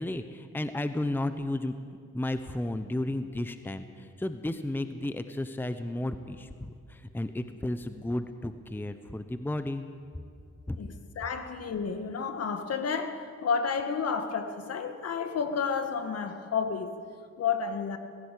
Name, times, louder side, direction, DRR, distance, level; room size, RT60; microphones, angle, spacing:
voice 1, 0.0-1.7 2.1-9.8 10.7-10.8, left 1 dB, 5° left, 10 dB, 0.9 m, -33 dB
voice 2, 10.8-16.9 17.4-18.0, left 6 dB, 55° left, 8 dB, 1.8 m, -31 dB
19.5 x 15.5 x 8.4 m, 2.3 s
cardioid pair, 90°, 30 cm